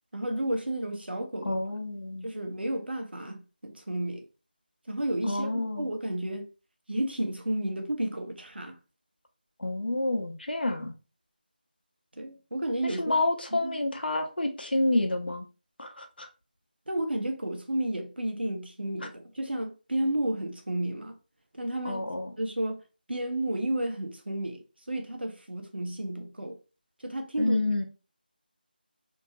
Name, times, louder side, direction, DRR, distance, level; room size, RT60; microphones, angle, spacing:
voice 1, 0.1-1.6 2.2-4.2 4.9-6.5 6.9-8.8 12.2-13.2 13.6-13.8 16.9-21.1 21.5-22.0 22.4-22.8 23.1-24.6 24.9-26.6 27.0-27.6, right 1 dB, 85° right, 0.8 m, -32 dB
voice 2, 1.4-2.3 5.3-5.9 9.6-10.9 13.0-15.5 15.8-16.3 21.8-22.3 27.4-27.8, left 2 dB, 70° left, 0.8 m, -28 dB
2.8 x 2.7 x 2.4 m
figure-of-eight pair, 165°, 5 cm